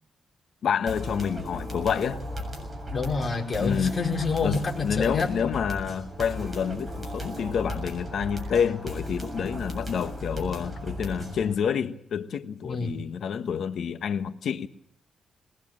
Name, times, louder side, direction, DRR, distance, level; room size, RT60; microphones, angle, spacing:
voice 1, 0.6-2.2 3.6-3.9 4.4-14.7, left 7 dB, 70° left, 1.2 m, -28 dB
sound 1, 0.9-11.5, equal, 20° right, 7.2 m, -36 dB
voice 2, 2.9-5.3 12.6-13.0, left 4 dB, 30° left, 4.9 m, -28 dB
22.0 x 20.0 x 7.6 m
cardioid pair, 120°, 0 cm